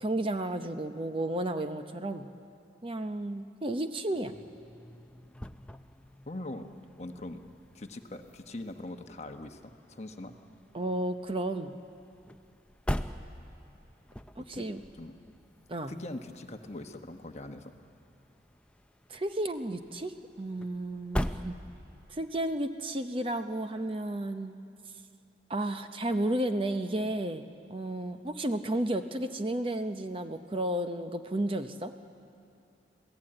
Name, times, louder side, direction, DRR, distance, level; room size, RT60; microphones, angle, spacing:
voice 1, 0.0-2.3 2.8-4.3 10.7-11.8 14.4-14.8 15.7-15.9 19.1-21.6 22.1-24.6 25.5-31.9, right 1 dB, 30° right, 8 dB, 0.7 m, -32 dB
sound 1, 4.1-22.2, equal, 5° left, 0.5 m, -43 dB
voice 2, 6.3-6.7 7.0-7.4 7.7-10.3 14.3-14.7 14.9-15.2 15.9-17.7 28.2-28.3, left 1 dB, 35° left, 6 dB, 1.1 m, -42 dB
26.5 x 17.0 x 8.8 m, 2.6 s
head